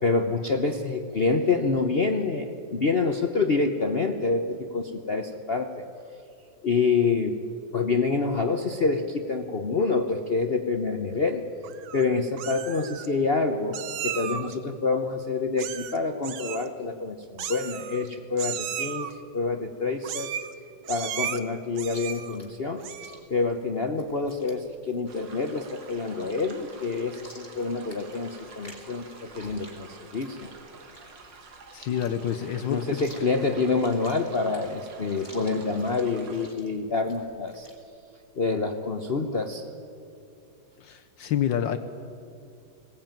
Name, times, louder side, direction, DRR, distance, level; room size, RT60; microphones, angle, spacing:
voice 1, 0.0-5.8 6.6-7.4 7.7-11.4 11.9-20.3 20.9-22.8 23.3-30.5 32.7-37.7 38.4-39.6, left 4 dB, 45° left, 5 dB, 0.8 m, -27 dB
Meow, 11.6-12.0 12.4-13.1 13.7-14.5 15.6-16.0 16.2-16.7 17.4-18.1 18.4-19.1 20.0-20.5 20.9-21.4 21.8-22.4 22.8-23.2, right 10 dB, 90° right, 1.7 m, -34 dB
Chewing mastication, 21.9-37.8, left 1 dB, 10° left, 2.9 m, -53 dB
sound 1, 25.1-36.5, right 4 dB, 65° right, 2.4 m, -48 dB
voice 2, 31.7-33.0 40.8-41.8, left 9 dB, 70° left, 7 dB, 1.4 m, -28 dB
20.5 x 17.5 x 9.0 m, 2.5 s
omnidirectional pair, 2.1 m